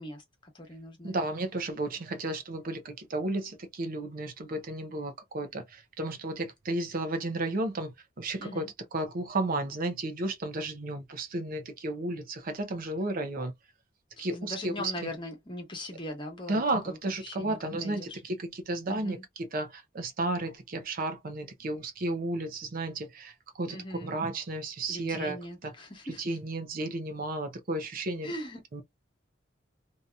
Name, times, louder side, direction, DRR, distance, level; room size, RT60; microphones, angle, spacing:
voice 1, 0.0-1.2 8.4-8.7 14.2-17.0 17.2-18.2 18.9-19.2 23.7-24.1 24.9-26.4 28.2-28.8, left 1 dB, 25° left, 1.1 m, -40 dB
voice 2, 1.0-8.7 8.9-13.5 14.2-15.1 16.5-25.7 26.2-28.3 28.7-28.8, right 2 dB, 45° right, 0.6 m, -33 dB
2.7 x 2.7 x 2.2 m
head